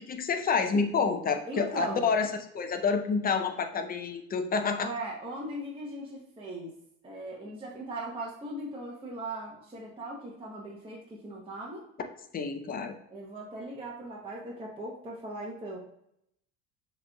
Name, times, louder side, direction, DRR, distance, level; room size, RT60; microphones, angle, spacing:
voice 1, 0.0-4.9 12.3-12.9, left 5 dB, 25° left, 7 dB, 0.6 m, -28 dB
voice 2, 1.5-2.1 4.8-6.7 7.0-11.8 13.1-15.8, right 1 dB, 15° right, -4 dB, 0.9 m, -39 dB
6.6 x 3.1 x 2.3 m, 0.75 s
supercardioid pair, 105°, 36 cm